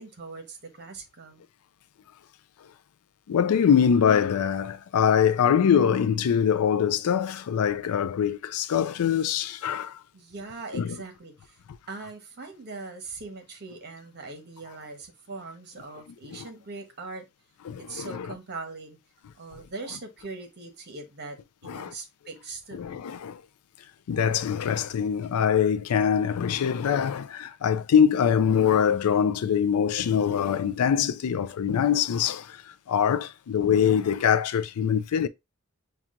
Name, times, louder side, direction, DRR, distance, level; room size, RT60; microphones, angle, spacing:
voice 1, 0.0-1.4 10.1-11.5 11.9-17.2 17.8-19.0 19.3-21.4 21.6-23.0, right 3 dB, 50° right, 1.1 m, -41 dB
voice 2, 3.3-10.0 10.7-11.0 16.3-16.5 17.7-18.3 21.7-21.9 22.7-23.4 24.1-32.6 32.9-35.3, left 8 dB, 85° left, 0.4 m, -23 dB
5.8 x 2.4 x 2.5 m
head